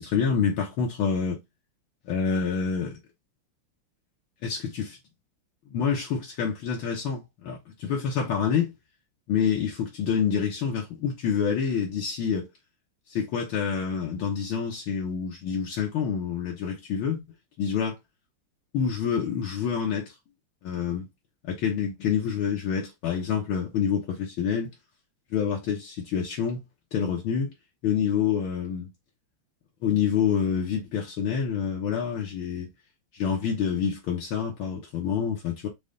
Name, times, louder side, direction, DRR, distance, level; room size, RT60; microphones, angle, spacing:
voice 1, 0.0-1.4 2.1-3.0 4.4-5.0 5.7-8.7 9.3-12.5 13.1-17.2 17.6-18.0 18.7-20.2 20.6-21.1 21.4-24.7 25.3-26.6 26.9-27.5 27.8-28.9 29.8-32.7 33.1-35.7, left 7 dB, 75° left, 1.8 m, -27 dB
5.4 x 2.4 x 3.8 m
omnidirectional pair, 2.4 m